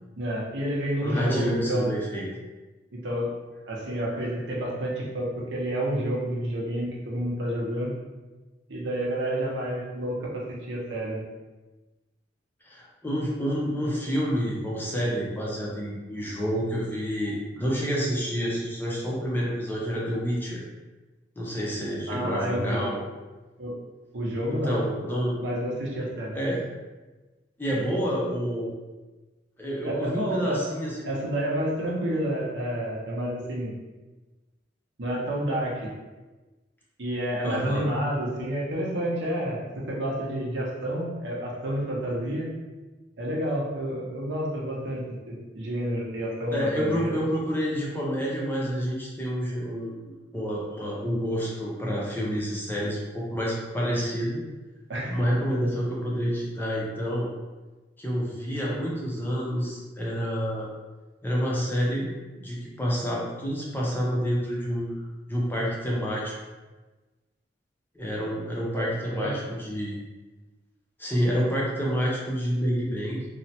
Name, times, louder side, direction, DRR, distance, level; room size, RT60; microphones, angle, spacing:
voice 1, 0.2-1.9 2.9-3.3 3.7-7.9 8.7-11.2 22.1-22.8 23.6-23.8 24.1-24.8 25.4-26.3 29.8-30.6 31.1-33.7 35.0-35.9 37.0-42.5 43.2-47.2 54.9-55.2 68.7-68.9 69.1-69.3, right 1 dB, 75° right, -3 dB, 0.7 m, -29 dB
voice 2, 1.0-2.3 12.6-20.6 21.4-23.0 24.5-25.4 26.3-26.6 27.6-28.7 29.6-31.1 37.4-37.9 46.5-49.9 50.3-54.4 55.1-57.3 58.0-60.7 61.2-62.1 62.4-65.0 65.3-66.3 68.0-70.0 71.0-73.2, equal, 10° left, -5 dB, 0.5 m, -28 dB
3.1 x 2.0 x 2.7 m, 1.2 s
head